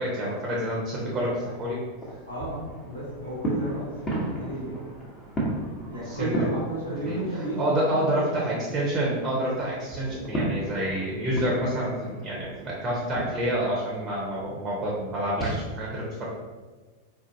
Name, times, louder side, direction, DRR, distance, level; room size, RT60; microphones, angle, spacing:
voice 1, 0.0-1.8 6.1-6.3 7.0-7.2 7.6-16.3, right 1 dB, 25° right, -4 dB, 0.7 m, -28 dB
sound 1, 0.9-7.8 8.1-15.6, right 1 dB, 20° left, 1.0 m, -35 dB
voice 2, 2.3-4.8 5.9-8.6, right 1 dB, 75° left, -6 dB, 1.3 m, -33 dB
3.8 x 2.5 x 2.6 m, 1.3 s
figure-of-eight pair, 90°, 0 cm